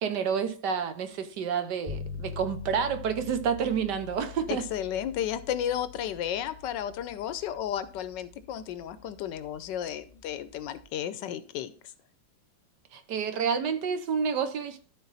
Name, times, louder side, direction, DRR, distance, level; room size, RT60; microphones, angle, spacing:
voice 1, 0.0-4.6 12.9-14.8, right 7 dB, 65° right, 1.4 m, -29 dB
sound 1, 1.9-10.8, left 6 dB, 20° right, 1.3 m, -44 dB
voice 2, 4.5-11.7, left 10 dB, 75° left, 1.2 m, -33 dB
12.5 x 4.2 x 4.1 m
omnidirectional pair, 2.1 m